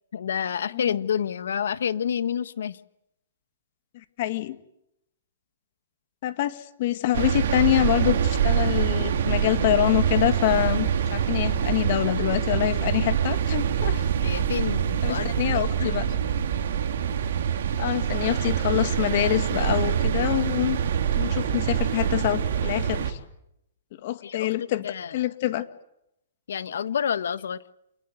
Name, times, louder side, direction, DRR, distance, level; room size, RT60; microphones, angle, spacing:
voice 1, 0.1-2.8 14.2-15.9 17.8-17.9 24.2-24.5 24.8-25.2 26.5-27.6, left 8 dB, 80° left, 14 dB, 1.5 m, -29 dB
voice 2, 3.9-4.6 6.2-14.0 15.0-16.0 17.8-20.8 21.1-23.2 24.0-24.9 25.1-25.7, left 14 dB, 45° left, 11 dB, 2.0 m, -26 dB
sound 1, 7.1-23.1, right 8 dB, 60° right, 3.7 m, -25 dB
28.5 x 20.0 x 9.4 m, 0.82 s
hypercardioid pair, 150°, 0 cm